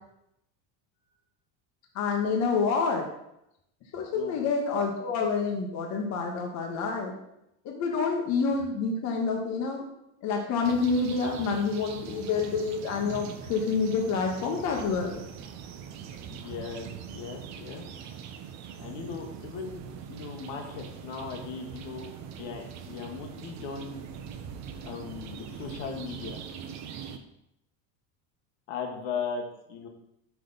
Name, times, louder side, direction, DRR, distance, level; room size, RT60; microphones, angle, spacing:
voice 1, 1.9-3.1 3.9-7.1 7.6-9.9 10.2-15.2, left 4 dB, 45° left, 1 dB, 1.1 m, -28 dB
sound 1, 10.6-27.2, right 7 dB, 45° right, 0.7 m, -42 dB
voice 2, 16.3-17.9 18.8-24.0 24.8-26.4 28.7-29.4 29.7-29.9, left 6 dB, 75° left, 2 dB, 1.3 m, -38 dB
6.0 x 5.0 x 3.9 m, 0.81 s
supercardioid pair, 130°, 39 cm